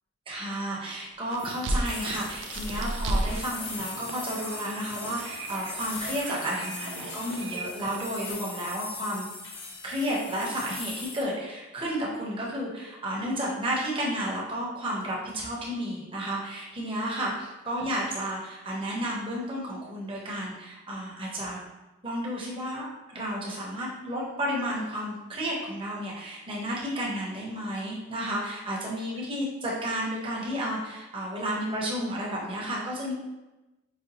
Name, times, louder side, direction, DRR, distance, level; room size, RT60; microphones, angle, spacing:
voice 1, 0.3-9.3 9.8-21.6 22.0-22.9 23.1-33.1, equal, 25° right, -4 dB, 0.8 m, -32 dB
sound 1, 1.3-8.0, right 2 dB, 65° right, 0.4 m, -34 dB
sound 2, 1.4-11.2, left 3 dB, 65° left, 0.7 m, -40 dB
4.9 x 2.2 x 2.8 m, 1.1 s
head